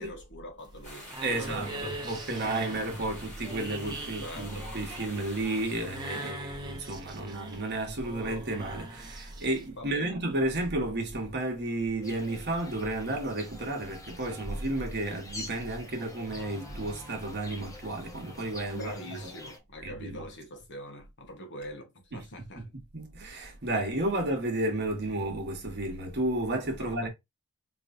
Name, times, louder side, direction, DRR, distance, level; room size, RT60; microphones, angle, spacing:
voice 1, 0.0-1.8 4.2-4.7 9.8-10.2 18.7-22.7 26.8-27.1, left 1 dB, 55° left, 1.1 m, -43 dB
sound 1, 0.6-9.7, right 2 dB, 20° right, 0.8 m, -42 dB
sound 2, 0.8-6.3, left 1 dB, 30° left, 2.3 m, -46 dB
voice 2, 1.2-19.3 19.8-20.3 22.1-22.3 22.5-27.1, right 2 dB, 50° right, 1.2 m, -32 dB
sound 3, 12.0-19.6, left 2 dB, 15° left, 0.8 m, -47 dB
4.2 x 3.1 x 2.5 m
head